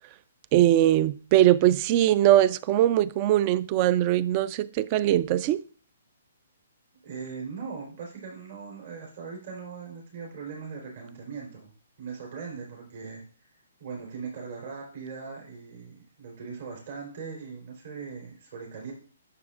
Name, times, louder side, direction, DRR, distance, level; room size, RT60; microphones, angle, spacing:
voice 1, 0.5-5.6, right 13 dB, 35° right, 0.4 m, -21 dB
voice 2, 7.0-11.7 12.0-13.2 13.8-18.9, right 5 dB, 65° right, 3.6 m, -39 dB
11.0 x 7.0 x 2.5 m
hypercardioid pair, 140°, 0 cm